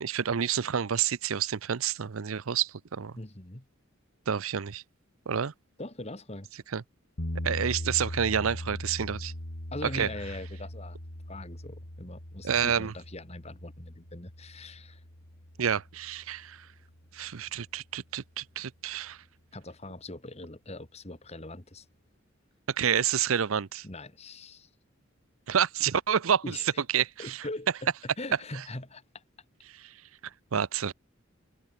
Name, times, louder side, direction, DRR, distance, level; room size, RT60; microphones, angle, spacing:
voice 1, 0.0-3.1 4.3-4.8 5.3-5.5 6.7-6.8 7.4-9.3 9.9-10.1 12.4-12.9 15.6-16.7 17.1-19.2 22.7-23.9 25.5-26.6 26.9-27.4 29.7-29.9 30.5-30.9, right 8 dB, 85° right, 0.6 m, -29 dB
voice 2, 3.2-3.6 5.8-6.5 9.7-11.0 11.3-15.0 19.5-21.9 23.8-24.7 26.4-26.6 27.2-27.9 28.2-29.2, left 2 dB, 30° left, 2.2 m, -41 dB
sound 1, 7.2-17.2, left 1 dB, 80° left, 4.6 m, -40 dB
head